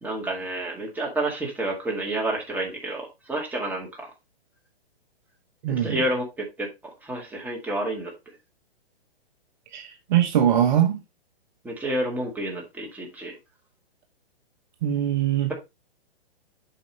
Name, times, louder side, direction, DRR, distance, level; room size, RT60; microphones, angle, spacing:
voice 1, 0.0-4.1 5.7-6.7 7.0-8.1 11.6-13.4, right 1 dB, 5° right, 2.0 m, -29 dB
voice 2, 5.6-6.0 9.7-11.0 14.8-15.5, right 10 dB, 45° right, 1.2 m, -22 dB
8.4 x 5.5 x 2.8 m
hypercardioid pair, 135°, 31 cm